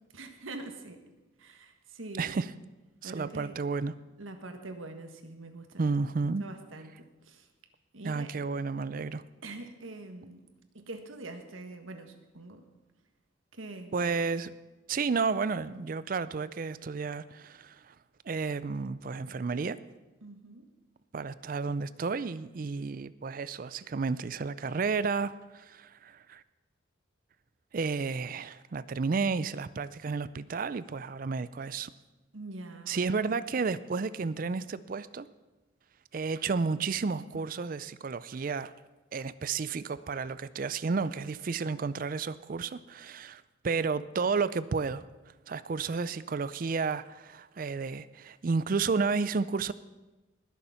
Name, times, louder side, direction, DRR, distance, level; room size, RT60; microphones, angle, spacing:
voice 1, 0.1-1.0 1.4-2.5 3.0-3.6 4.2-5.9 6.4-7.5 7.9-8.3 9.4-10.4 10.7-12.6 13.5-14.1 19.3-19.4 20.2-20.7 32.3-33.1, right 2 dB, 90° right, 6 dB, 1.6 m, -44 dB
voice 2, 2.2-2.5 3.0-3.9 5.8-6.4 8.0-9.2 13.9-14.5 14.9-17.9 18.3-19.8 21.1-26.4 27.7-31.9 32.9-35.3 36.1-38.7 39.1-45.0 45.5-49.7, right 4 dB, 45° right, 16 dB, 0.4 m, -32 dB
20.0 x 7.0 x 5.7 m, 1.1 s
head